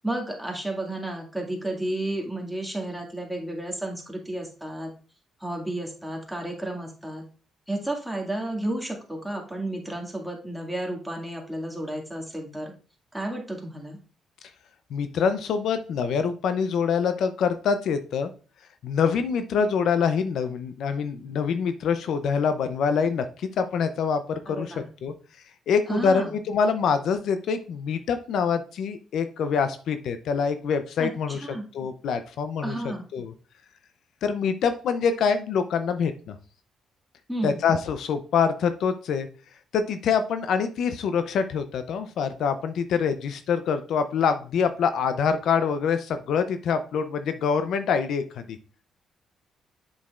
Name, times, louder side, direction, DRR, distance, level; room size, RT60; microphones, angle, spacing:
voice 1, 0.0-4.9 5.4-7.2 7.7-12.7 13.1-14.0 24.5-24.9 25.9-26.3 31.0-31.7 32.6-33.1 37.3-37.6, right 1 dB, ahead, 0 dB, 2.0 m, -32 dB
voice 2, 14.9-18.3 18.8-25.1 25.7-31.4 31.7-33.3 34.2-36.4 37.4-39.3 39.7-48.4, left 6 dB, 75° left, 9 dB, 0.5 m, -25 dB
7.3 x 6.3 x 2.4 m, 0.38 s
cardioid pair, 90°, 0 cm